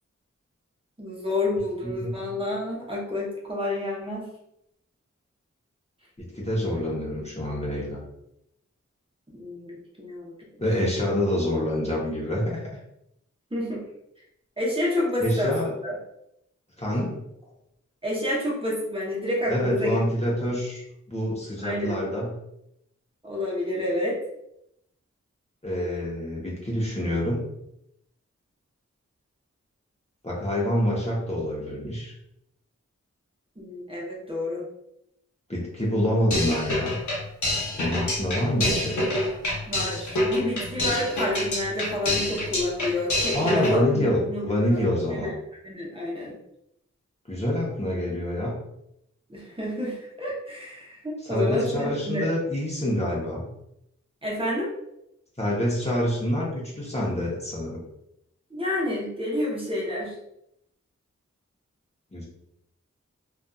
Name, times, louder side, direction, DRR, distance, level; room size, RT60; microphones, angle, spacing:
voice 1, 1.0-4.3 9.3-10.3 13.5-13.8 14.6-15.5 15.8-16.0 18.0-20.0 21.6-22.0 23.2-24.2 33.6-34.7 39.7-44.8 45.1-45.3 45.6-46.4 49.3-52.2 54.2-54.7 58.5-60.1, left 1 dB, 20° right, -5 dB, 0.9 m, -29 dB
voice 2, 1.8-2.2 6.2-8.0 10.6-12.7 15.2-15.7 16.8-17.1 19.5-22.3 25.6-27.4 30.2-32.1 35.5-37.0 37.7-39.0 43.3-45.3 47.3-48.5 51.3-53.5 55.4-57.8 62.1-62.3, left 1 dB, 20° left, -5 dB, 0.9 m, -26 dB
sound 1, 36.3-43.8, left 1 dB, 90° left, 0.7 m, -27 dB
2.5 x 2.4 x 2.3 m, 0.79 s
cardioid pair, 45°, 29 cm